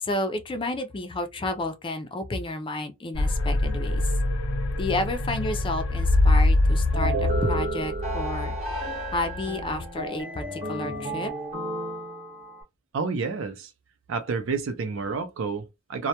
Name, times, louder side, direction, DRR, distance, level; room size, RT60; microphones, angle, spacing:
voice 1, 0.0-4.0 4.8-8.6 9.1-11.3, left 2 dB, 25° left, 0.4 m, -31 dB
sound 1, 3.1-9.8, left 2 dB, 90° left, 0.5 m, -24 dB
sound 2, 6.9-12.6, right 3 dB, 35° right, 0.8 m, -32 dB
voice 2, 12.9-13.7 14.1-16.1, right 4 dB, 65° right, 0.5 m, -29 dB
2.1 x 2.1 x 2.8 m
head